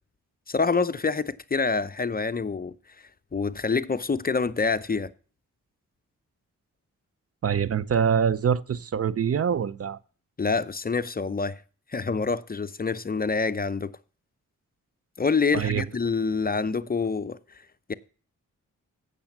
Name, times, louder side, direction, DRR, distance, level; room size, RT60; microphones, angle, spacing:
voice 1, 0.5-2.7 3.3-5.1 10.4-11.6 11.9-13.9 15.2-17.4 17.9-18.0, left 4 dB, 30° left, 0.6 m, -26 dB
voice 2, 7.4-10.0 15.5-15.8, right 7 dB, 45° right, 0.5 m, -24 dB
8.7 x 6.7 x 5.8 m
cardioid pair, 50°, 32 cm